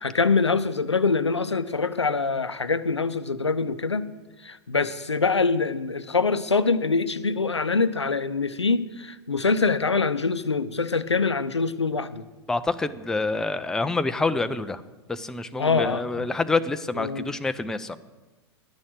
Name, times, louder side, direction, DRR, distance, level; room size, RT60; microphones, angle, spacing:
voice 1, 0.0-4.1 4.4-12.2 15.6-16.3 17.0-17.3, left 4 dB, 85° left, 14 dB, 0.6 m, -24 dB
voice 2, 12.5-14.8 15.1-18.0, left 3 dB, 5° left, 11 dB, 0.4 m, -27 dB
10.5 x 6.3 x 8.8 m, 1.2 s
figure-of-eight pair, 100°, 14 cm